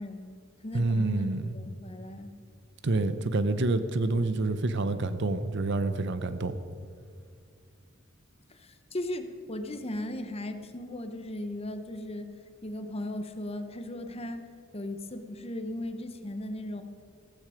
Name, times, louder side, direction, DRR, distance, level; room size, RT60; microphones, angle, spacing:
voice 1, 0.0-2.3 8.5-12.3 12.6-14.5 14.7-16.8, left 1 dB, 30° left, 8 dB, 0.9 m, -37 dB
voice 2, 0.7-1.5 2.8-6.6, right 2 dB, 60° right, 12 dB, 0.8 m, -27 dB
15.5 x 14.0 x 5.1 m, 2.2 s
head